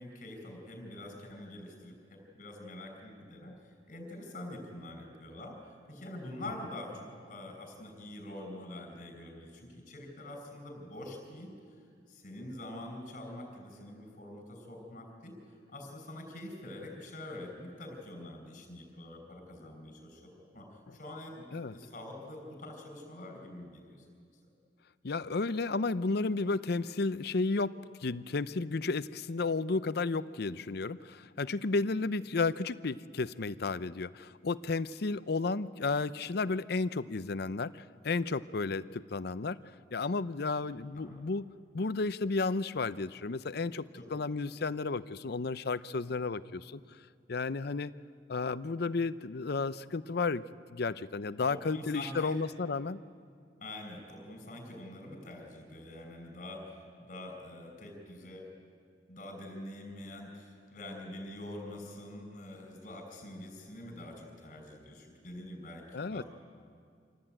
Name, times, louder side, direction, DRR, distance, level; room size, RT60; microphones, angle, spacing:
voice 1, 0.0-15.4 15.7-24.1 40.7-41.2 43.9-44.1 51.5-52.4 53.6-58.5 59.1-66.2, left 1 dB, 45° left, 3 dB, 5.6 m, -45 dB
voice 2, 25.0-39.6 39.9-41.4 41.7-46.8 47.3-47.9 48.3-50.4 50.7-53.0 65.9-66.2, left 3 dB, 60° left, 15 dB, 0.6 m, -33 dB
26.0 x 17.0 x 9.0 m, 2.3 s
head